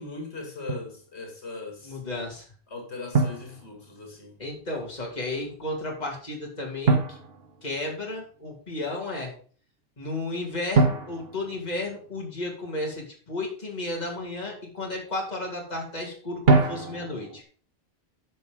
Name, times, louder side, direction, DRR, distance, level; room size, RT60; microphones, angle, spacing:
voice 1, 0.0-2.0 2.7-4.4, left 3 dB, 80° left, 2.5 m, -39 dB
Drum, 0.7-1.0 3.1-4.3 6.9-8.3 10.7-12.5 16.5-17.4, right 3 dB, 65° right, 1.4 m, -25 dB
voice 2, 1.8-2.4 4.4-7.2 7.6-9.3 10.0-17.4, left 2 dB, 40° left, 2.8 m, -33 dB
10.5 x 5.6 x 5.2 m
omnidirectional pair, 1.1 m